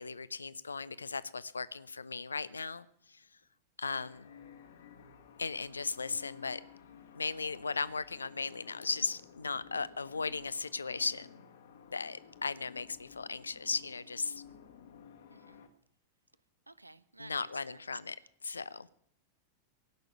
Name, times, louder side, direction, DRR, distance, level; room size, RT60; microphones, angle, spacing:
voice 1, 0.0-3.3 3.8-4.3 5.4-6.6 7.1-11.5 11.9-14.4 17.2-18.2 18.4-18.9, left 4 dB, 75° left, 18 dB, 0.6 m, -37 dB
sound 1, 3.8-15.7, left 7 dB, 60° left, 1.6 m, -55 dB
voice 2, 15.3-15.6 16.7-17.9, right 2 dB, 85° right, 17 dB, 0.7 m, -54 dB
17.0 x 6.5 x 9.7 m, 0.67 s
figure-of-eight pair, 90°, 0 cm